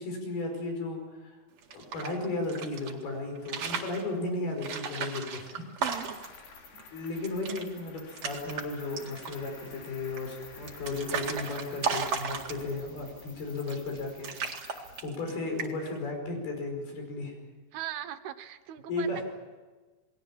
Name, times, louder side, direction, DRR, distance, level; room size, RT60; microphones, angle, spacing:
voice 1, 0.0-1.4 1.7-5.5 6.9-14.3 14.7-17.3 18.9-19.2, left 2 dB, 70° left, 3 dB, 7.1 m, -35 dB
sound 1, 1.6-2.9 3.4-4.0 4.6-6.4 6.8-6.9 7.1-7.6 8.0-8.6 9.0-9.5 10.2-12.9 13.6-14.0 14.2-15.3 15.6-16.0, right 5 dB, 45° right, 2.6 m, -35 dB
voice 2, 5.8-6.2 6.7-6.8 17.7-19.2, right 11 dB, 80° right, 10 dB, 2.9 m, -39 dB
Cricket, 5.9-12.2, left 5 dB, 90° left, 4.9 m, -51 dB
sound 2, 8.3-15.0, left 1 dB, 20° left, 7.3 m, -52 dB
28.5 x 20.5 x 7.3 m, 1.3 s
omnidirectional pair, 4.6 m